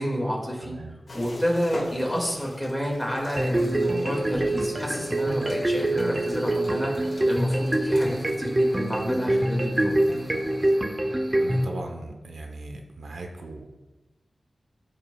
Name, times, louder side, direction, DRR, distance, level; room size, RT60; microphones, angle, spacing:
voice 1, 0.0-0.8 1.1-10.0, equal, 10° left, -1 dB, 2.0 m, -29 dB
voice 2, 0.6-0.9 11.4-13.7, right 2 dB, 90° right, 3 dB, 0.9 m, -38 dB
sound 1, 1.1-10.7, left 1 dB, 70° left, 1.9 m, -45 dB
sound 2, 3.4-11.7, right 1 dB, 25° right, 0.7 m, -25 dB
14.0 x 5.4 x 2.3 m, 1.2 s
wide cardioid pair, 95°, 0 cm